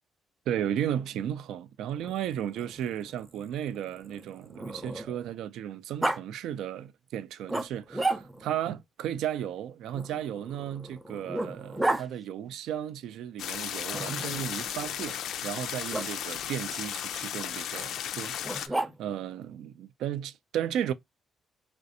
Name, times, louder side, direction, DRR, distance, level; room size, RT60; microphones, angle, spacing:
voice 1, 0.5-20.9, right 10 dB, 85° right, 0.3 m, -34 dB
Growling, 1.9-5.3 6.0-6.2 7.5-8.6 9.9-12.1 13.9-14.6 15.9-16.1 18.4-19.3, right 2 dB, 10° right, 0.5 m, -33 dB
sound 1, 13.4-18.7, left 9 dB, 80° left, 0.3 m, -35 dB
3.2 x 2.5 x 2.6 m
cardioid pair, 90°, 0 cm